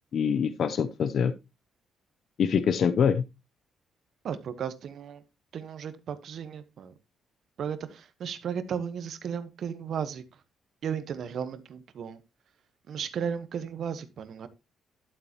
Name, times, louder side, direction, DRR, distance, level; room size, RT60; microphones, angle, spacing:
voice 1, 0.1-1.3 2.4-3.2, left 7 dB, 60° left, 0.7 m, -24 dB
voice 2, 4.2-5.2 5.5-6.9 7.6-10.2 10.8-12.2 12.9-14.5, right 7 dB, 65° right, 1.2 m, -35 dB
11.5 x 8.1 x 3.0 m
cardioid pair, 90°, 0 cm